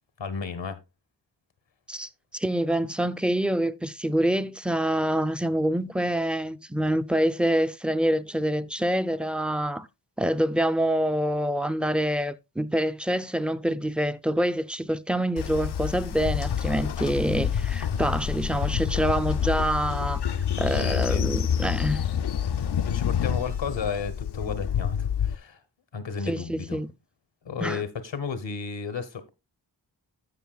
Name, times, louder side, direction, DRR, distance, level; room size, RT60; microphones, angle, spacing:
voice 1, 0.2-0.8 20.7-21.3 22.8-25.6 25.9-26.8 27.4-29.3, left 5 dB, 90° left, 1.1 m, -33 dB
voice 2, 1.9-9.9 10.2-20.2 20.6-22.0 26.3-26.9 27.6-27.8, right 1 dB, ahead, 0.5 m, -26 dB
Train, 15.4-25.4, left 8 dB, 65° left, 0.5 m, -28 dB
16.5 x 5.5 x 2.3 m
wide cardioid pair, 65°, 43 cm